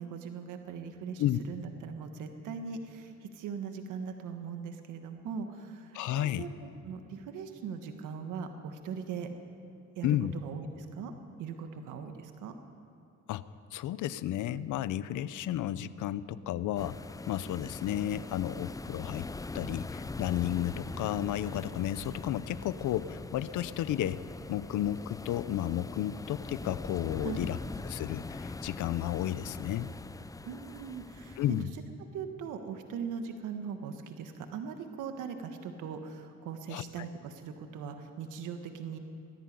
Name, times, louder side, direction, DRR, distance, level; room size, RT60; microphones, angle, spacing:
voice 1, 0.0-9.3 9.9-11.1 11.4-12.6 27.2-27.5 30.4-31.6 32.1-39.0, right 6 dB, 85° right, 6 dB, 1.6 m, -40 dB
voice 2, 5.9-6.5 10.0-10.3 13.3-13.4 13.7-17.0 17.3-24.2 24.5-27.6 27.8-29.9 31.4-31.7 36.7-36.8, left 12 dB, 80° left, 16 dB, 0.7 m, -32 dB
sound 1, 16.8-31.6, left 3 dB, 10° left, 0.5 m, -42 dB
19.0 x 14.0 x 9.5 m, 2.7 s
cardioid pair, 90°, 30 cm